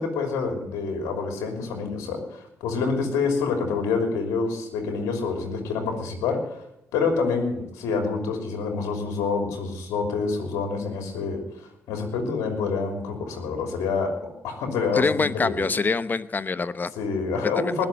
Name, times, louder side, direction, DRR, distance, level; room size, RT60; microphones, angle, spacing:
voice 1, 0.0-6.6 6.9-14.1 14.4-15.6 16.9-17.9, left 4 dB, 90° left, 4 dB, 3.2 m, -27 dB
voice 2, 14.9-16.9 17.6-17.9, left 4 dB, 35° left, 15 dB, 0.9 m, -25 dB
20.0 x 7.1 x 7.6 m, 0.82 s
supercardioid pair, 55°, 5 cm